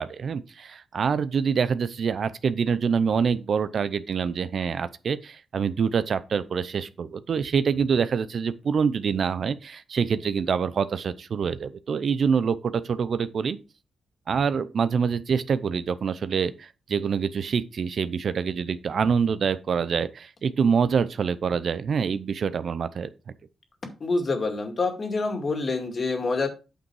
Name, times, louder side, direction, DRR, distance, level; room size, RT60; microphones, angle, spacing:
voice 1, 0.0-13.6 14.3-23.1, right 6 dB, 60° right, 0.6 m, -26 dB
voice 2, 24.0-26.5, left 3 dB, 45° left, 2.2 m, -26 dB
8.8 x 5.4 x 4.7 m
cardioid pair, 105°, 0 cm